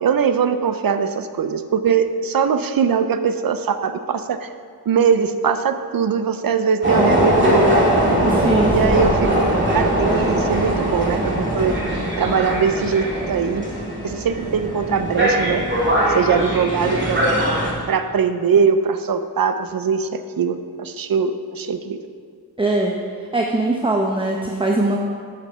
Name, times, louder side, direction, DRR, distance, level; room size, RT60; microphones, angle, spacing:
voice 1, 0.0-4.5 4.9-7.8 8.7-11.7 12.2-13.6 14.0-15.7 16.1-17.2 17.9-22.0, right 6 dB, 60° right, 10 dB, 0.6 m, -21 dB
sound 1, 6.8-17.7, right 1 dB, 30° right, 2.3 m, -20 dB
voice 2, 8.3-8.9 16.3-16.5 22.6-22.9 23.3-25.0, right 2 dB, 15° right, 0 dB, 0.7 m, -21 dB
7.5 x 7.3 x 5.6 m, 2.1 s
wide cardioid pair, 90°, 39 cm